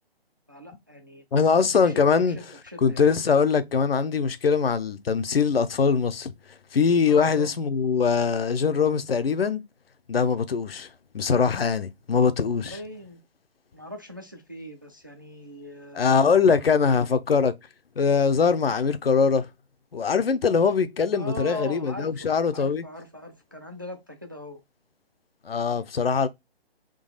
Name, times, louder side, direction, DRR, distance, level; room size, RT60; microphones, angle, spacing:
voice 1, 0.5-3.0 7.1-7.5 12.6-13.2 13.7-16.5 21.1-24.6, left 1 dB, 20° right, 0.3 m, -40 dB
voice 2, 1.3-2.4 2.8-6.3 6.7-9.6 10.1-10.9 11.1-12.8 15.9-17.6 18.0-19.5 19.9-22.8 25.4-26.3, left 5 dB, 65° left, 0.7 m, -22 dB
3.8 x 2.9 x 3.9 m
figure-of-eight pair, 145°, 31 cm